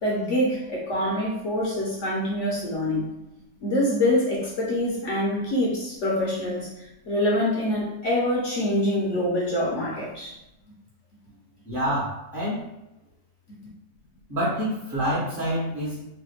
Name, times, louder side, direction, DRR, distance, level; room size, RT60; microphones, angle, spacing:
voice 1, 0.0-3.1 3.6-10.3, left 1 dB, 60° left, -4 dB, 0.9 m, -25 dB
voice 2, 11.6-12.7 14.3-16.1, equal, 40° right, -7 dB, 0.9 m, -27 dB
3.2 x 2.2 x 3.2 m, 0.90 s
omnidirectional pair, 1.6 m